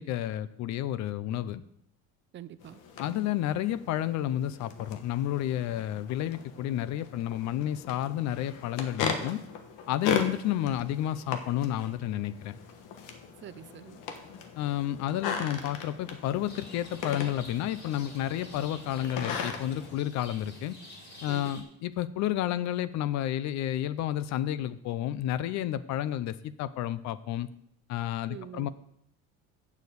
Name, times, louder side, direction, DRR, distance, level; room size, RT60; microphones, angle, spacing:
voice 1, 0.0-1.6 3.0-9.4 9.9-12.6 14.6-20.8 21.2-27.5 27.9-28.7, left 12 dB, 60° left, 16 dB, 0.6 m, -31 dB
voice 2, 2.3-2.8 13.4-14.0 21.2-21.5 28.3-28.7, right 11 dB, 40° right, 14 dB, 0.5 m, -45 dB
sound 1, 2.6-20.0, left 6 dB, 80° left, 1.3 m, -38 dB
Rain, 16.4-21.6, left 1 dB, 35° left, 2.7 m, -48 dB
7.2 x 6.8 x 8.1 m, 0.74 s
cardioid pair, 140°, 31 cm